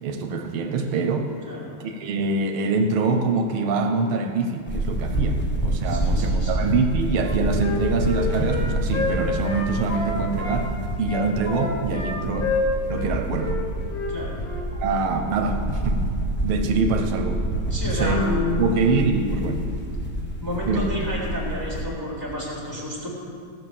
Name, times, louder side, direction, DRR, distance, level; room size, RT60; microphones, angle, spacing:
voice 1, 0.0-1.3 1.8-10.7 11.0-12.5 12.9-13.6 14.8-16.0 16.4-17.4 17.9-18.2 18.6-19.6 20.6-20.9, right 3 dB, 90° right, 5 dB, 1.7 m, -24 dB
sound 1, 4.7-21.8, right 1 dB, 10° left, 0.6 m, -27 dB
voice 2, 5.8-6.7 14.1-14.4 17.7-19.1 20.4-23.1, left 1 dB, 10° right, -6 dB, 3.9 m, -30 dB
Wind instrument woodwind instrument, 7.1-10.6 11.0-13.1 13.4-13.6 13.9-14.1 14.4-14.6, left 3 dB, 65° left, 2.5 m, -29 dB
17.0 x 6.2 x 6.9 m, 2.4 s
omnidirectional pair, 2.3 m